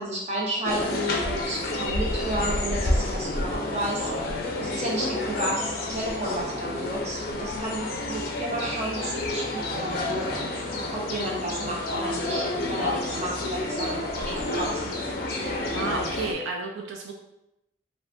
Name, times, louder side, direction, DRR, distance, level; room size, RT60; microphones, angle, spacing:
voice 1, 0.0-14.9, right 1 dB, 35° right, -3 dB, 0.7 m, -32 dB
sound 1, 0.6-16.3, left 2 dB, 50° left, 0.4 m, -29 dB
voice 2, 15.4-17.1, right 3 dB, 75° right, 1 dB, 0.3 m, -32 dB
2.4 x 2.3 x 3.5 m, 0.86 s
head